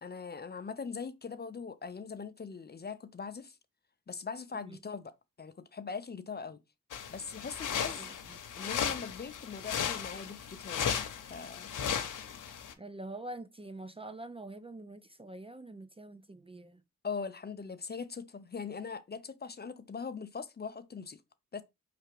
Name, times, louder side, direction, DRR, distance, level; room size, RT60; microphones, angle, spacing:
voice 1, 0.0-3.6 4.1-6.6 7.1-8.0 8.6-11.7 17.0-21.2 21.5-21.6, left 5 dB, 30° left, 0.5 m, -41 dB
sound 1, 6.9-12.7, left 8 dB, 70° left, 0.8 m, -36 dB
voice 2, 7.9-8.4 12.8-16.8, right 2 dB, 15° right, 0.5 m, -45 dB
4.8 x 3.3 x 3.2 m
supercardioid pair, 50°, 32 cm